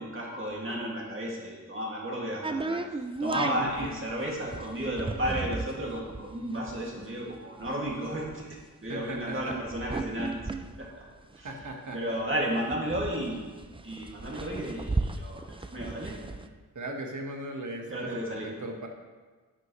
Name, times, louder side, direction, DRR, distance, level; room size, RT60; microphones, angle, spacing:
voice 1, 0.0-10.4 10.8-11.0 11.3-11.5 11.9-13.4 13.8-16.2 17.9-18.5, equal, 35° right, -3 dB, 2.4 m, -33 dB
sound 1, 2.4-11.9 12.3-12.4 12.5-16.5, right 3 dB, 15° right, 0.4 m, -35 dB
voice 2, 3.4-3.9 8.9-9.6 11.4-12.0 16.7-18.9, right 1 dB, 55° right, 2 dB, 1.5 m, -37 dB
10.5 x 9.6 x 3.2 m, 1.4 s
wide cardioid pair, 125°, 35 cm